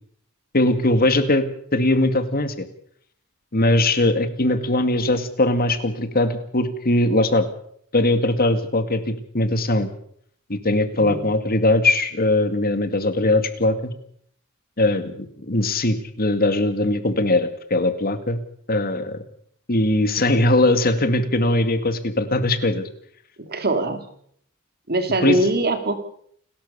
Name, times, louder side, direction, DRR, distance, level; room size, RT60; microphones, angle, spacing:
voice 1, 0.5-1.5 1.7-2.5 3.5-7.5 7.9-9.9 10.5-13.9 14.8-18.4 18.7-19.2 19.7-22.8 25.2-25.4, left 2 dB, 45° left, 9 dB, 2.3 m, -20 dB
voice 2, 23.4-24.0 24.9-26.1, right 1 dB, 50° right, 7 dB, 2.9 m, -22 dB
29.0 x 13.0 x 6.9 m, 0.65 s
head